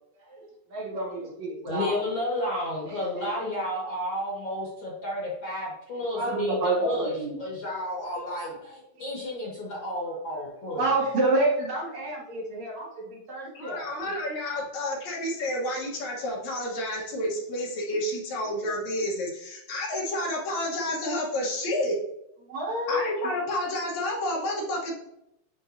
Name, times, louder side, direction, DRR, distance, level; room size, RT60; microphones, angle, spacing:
voice 1, 0.2-2.1 2.8-3.4 6.1-7.4 8.4-9.1 10.0-10.1 10.7-14.2 22.4-23.1, right 2 dB, 65° right, -3 dB, 2.8 m, -29 dB
voice 2, 1.7-7.1 7.4-10.9 16.8-16.9, left 1 dB, 45° left, -4 dB, 1.8 m, -32 dB
voice 3, 13.6-22.0 22.9-25.0, left 1 dB, 65° left, -1 dB, 2.3 m, -30 dB
10.0 x 3.8 x 2.6 m, 0.80 s
omnidirectional pair, 3.6 m